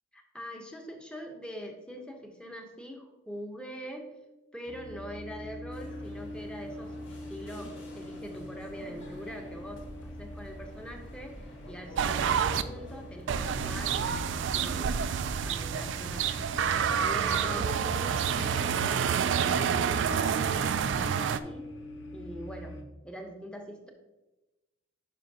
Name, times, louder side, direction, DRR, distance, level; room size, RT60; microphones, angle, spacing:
voice 1, 0.1-4.1 4.5-15.0 15.5-16.5 17.0-21.7 22.1-23.9, equal, 5° left, 3 dB, 0.8 m, -43 dB
sound 1, 4.7-22.8, left 1 dB, 70° left, 0.7 m, -44 dB
sound 2, 5.7-21.1, equal, 85° left, 1.5 m, -49 dB
sound 3, 12.0-12.6 13.3-21.4, right 7 dB, 75° right, 0.3 m, -28 dB
9.8 x 5.5 x 2.7 m, 1.1 s
head